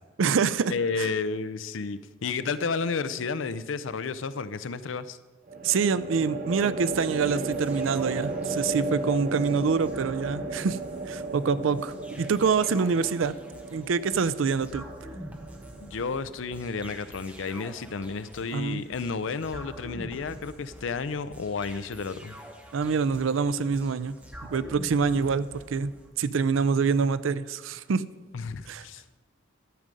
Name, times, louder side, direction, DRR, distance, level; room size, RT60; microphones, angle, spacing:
voice 1, 0.2-0.7 1.0-1.1 5.6-10.8 11.1-13.3 13.7-14.8 18.5-18.8 22.7-24.2 24.5-25.9 26.2-28.0 28.7-28.8, right 5 dB, 90° right, 16 dB, 0.4 m, -26 dB
voice 2, 0.7-5.2 15.8-22.4 28.3-29.2, left 4 dB, 85° left, 14 dB, 0.5 m, -32 dB
sound 1, 2.4-2.9 5.5-16.8, right 3 dB, 40° right, 0.8 m, -35 dB
sound 2, 6.9-26.1, equal, 5° right, 1.0 m, -47 dB
12.5 x 5.2 x 7.5 m, 1.3 s
head